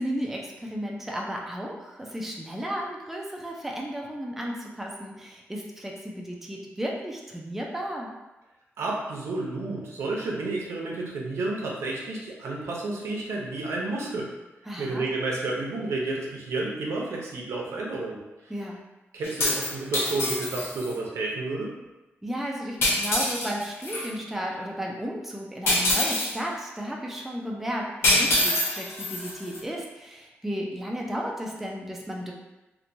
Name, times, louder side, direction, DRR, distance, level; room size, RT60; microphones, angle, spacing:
voice 1, 0.0-8.1 14.7-15.1 18.5-18.8 22.2-32.3, equal, 5° right, -2 dB, 0.3 m, -34 dB
voice 2, 8.8-14.3 14.8-18.5 19.1-21.7, right 2 dB, 80° right, -2 dB, 0.6 m, -31 dB
sound 1, 19.2-20.9 22.8-24.1 25.7-26.4 28.0-29.6, left 1 dB, 65° left, 0.6 m, -25 dB
2.9 x 2.2 x 2.5 m, 1.0 s
wide cardioid pair, 165°, 5 cm